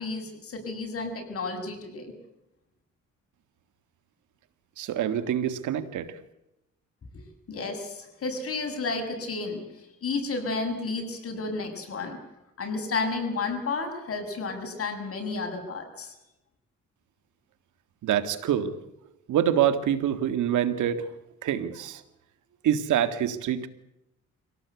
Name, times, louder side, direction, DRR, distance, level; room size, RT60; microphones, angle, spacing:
voice 1, 0.0-2.1 7.1-7.2 7.5-12.2 12.6-16.1, left 3 dB, 50° left, 4 dB, 7.2 m, -32 dB
voice 2, 4.8-6.2 18.0-18.7 19.3-21.0 21.4-22.0 22.6-23.7, right 10 dB, 75° right, 11 dB, 1.9 m, -26 dB
25.5 x 17.5 x 8.3 m, 0.91 s
cardioid pair, 90°, 30 cm